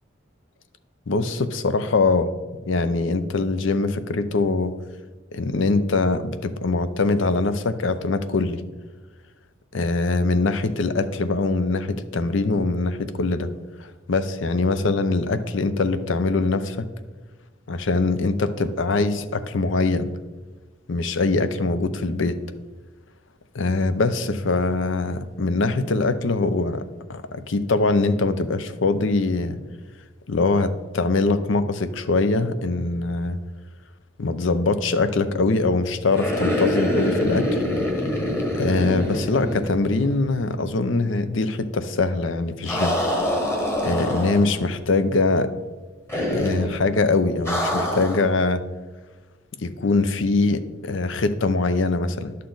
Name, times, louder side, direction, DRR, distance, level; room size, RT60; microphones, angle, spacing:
voice 1, 1.1-2.3 2.7-4.7 5.3-8.6 9.7-13.5 13.8-16.9 17.7-20.1 20.9-22.4 23.5-26.8 27.1-29.6 30.3-33.4 34.2-37.6 38.6-43.0 43.8-45.5 46.3-48.7 49.6-52.3, left 3 dB, 70° left, 12 dB, 0.6 m, -23 dB
sound 1, 36.1-40.3 40.5-40.6 42.7-44.7 46.1-46.8 47.5-48.3, left 1 dB, 10° left, 1.1 m, -25 dB
11.5 x 6.7 x 3.9 m, 1.3 s
head